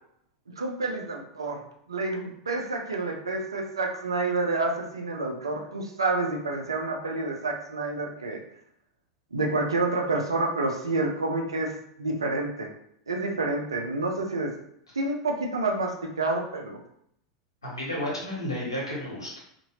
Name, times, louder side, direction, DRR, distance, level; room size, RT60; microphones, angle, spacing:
voice 1, 0.6-1.6 1.9-8.4 9.3-11.7 12.0-12.7 13.1-14.5 15.0-16.8, right 2 dB, 80° right, 2 dB, 0.5 m, -28 dB
voice 2, 17.6-19.4, left 1 dB, 85° left, -5 dB, 1.2 m, -32 dB
2.7 x 2.5 x 2.9 m, 0.73 s
figure-of-eight pair, 90°, 2 cm